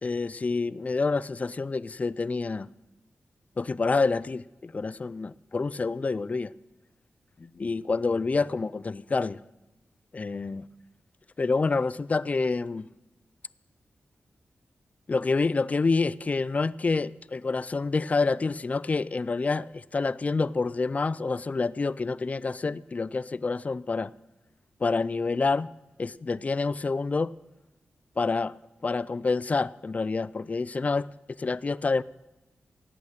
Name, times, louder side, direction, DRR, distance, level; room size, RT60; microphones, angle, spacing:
voice 1, 0.0-2.7 3.6-6.5 7.4-9.4 10.1-10.7 11.4-12.9 15.1-24.1 24.8-25.7 26.0-27.3 28.2-28.6 28.8-31.1 31.4-32.0, left 4 dB, 35° left, 0.4 m, -27 dB
17.0 x 8.6 x 6.5 m
cardioid pair, 75°, 4 cm